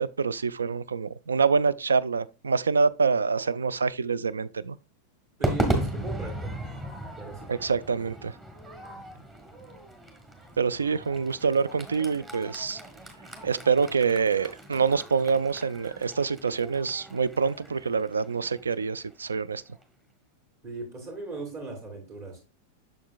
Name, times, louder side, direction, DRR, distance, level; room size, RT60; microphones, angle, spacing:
voice 1, 0.0-4.8 7.5-8.3 10.6-12.8 13.4-19.6, right 5 dB, 75° right, 0.3 m, -26 dB
Crowd / Fireworks, 5.4-19.8, right 1 dB, 15° right, 1.4 m, -36 dB
voice 2, 5.4-6.5 7.2-7.5 20.6-22.4, right 3 dB, 50° right, 2.9 m, -38 dB
7.2 x 6.4 x 2.4 m
figure-of-eight pair, 90°, 0 cm